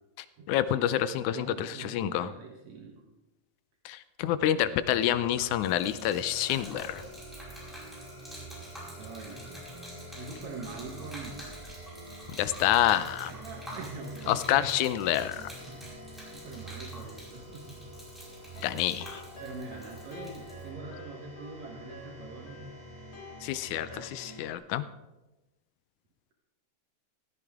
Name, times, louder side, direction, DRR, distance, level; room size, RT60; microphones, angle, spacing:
voice 1, 0.5-2.3 3.9-7.0 12.3-13.3 14.3-15.5 18.6-19.2 23.4-24.8, left 12 dB, 85° left, 14 dB, 2.0 m, -28 dB
voice 2, 1.3-3.0 9.0-9.6 10.1-11.5 13.2-14.7 15.7-17.8 19.4-22.7, right 3 dB, 65° right, -1 dB, 2.5 m, -43 dB
sound 1, 4.6-24.5, right 2 dB, 20° right, 1.4 m, -46 dB
Gurgling / Liquid, 5.2-20.7, equal, ahead, 4.9 m, -48 dB
sound 2, 18.4-24.0, left 2 dB, 45° left, 2.7 m, -50 dB
15.5 x 13.5 x 3.6 m, 1.0 s
omnidirectional pair, 3.4 m